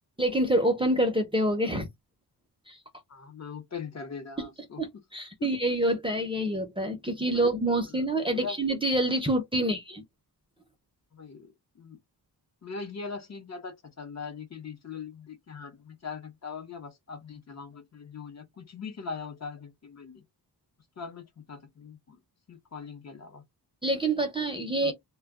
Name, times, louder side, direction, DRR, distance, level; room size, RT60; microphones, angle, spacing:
voice 1, 0.2-1.9 2.7-2.8 4.8-10.0 23.8-24.9, right 1 dB, 15° right, 0.6 m, -27 dB
voice 2, 3.1-4.8 5.4-5.5 7.3-7.5 7.9-8.0 8.3-8.6 9.6-9.8 11.1-12.0 12.6-20.2 21.0-22.2 22.5-23.4 24.8-24.9, left 5 dB, 40° left, 0.7 m, -41 dB
2.2 x 2.2 x 3.5 m
wide cardioid pair, 125°, 41 cm